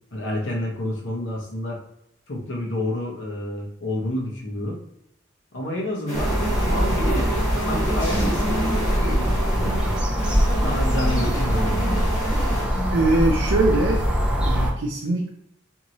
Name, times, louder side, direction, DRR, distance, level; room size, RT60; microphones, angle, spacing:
voice 1, 0.1-1.8 2.3-4.8 5.5-9.9 10.6-12.0, left 1 dB, 75° left, -1 dB, 0.9 m, -29 dB
sound 1, 6.1-12.6, right 2 dB, 40° left, 1.4 m, -30 dB
sound 2, 6.1-14.7, equal, 5° right, 0.5 m, -23 dB
sound 3, 8.0-10.0 10.5-13.1 13.4-13.9, equal, 10° left, 1.3 m, -32 dB
voice 2, 12.9-14.1 14.4-15.3, right 2 dB, 60° right, -1 dB, 0.5 m, -22 dB
3.0 x 2.7 x 2.6 m, 0.74 s
head